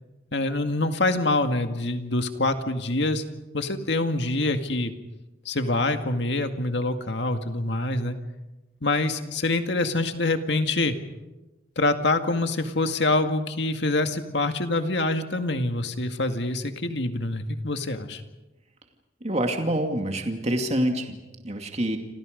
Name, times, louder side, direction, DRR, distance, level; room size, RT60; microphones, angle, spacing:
voice 1, 0.3-3.2 3.5-4.9 5.5-8.2 8.8-11.0 11.8-18.2, left 2 dB, 65° left, 6 dB, 2.1 m, -25 dB
voice 2, 19.2-21.2 21.4-22.0, right 1 dB, 35° right, 4 dB, 2.4 m, -26 dB
29.5 x 26.5 x 5.3 m, 1.1 s
head